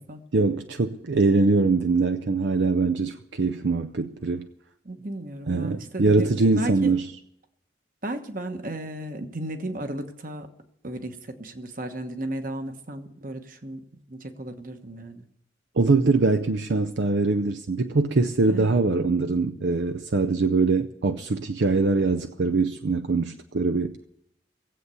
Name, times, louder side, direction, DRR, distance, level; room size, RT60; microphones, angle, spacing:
voice 1, 0.3-4.5 5.5-7.1 15.8-24.1, right 3 dB, 70° right, 0.6 m, -23 dB
voice 2, 4.8-6.3 6.5-6.9 8.0-10.5 10.8-15.2 18.5-18.7, right 1 dB, 45° right, 1.2 m, -34 dB
18.0 x 8.1 x 6.9 m
head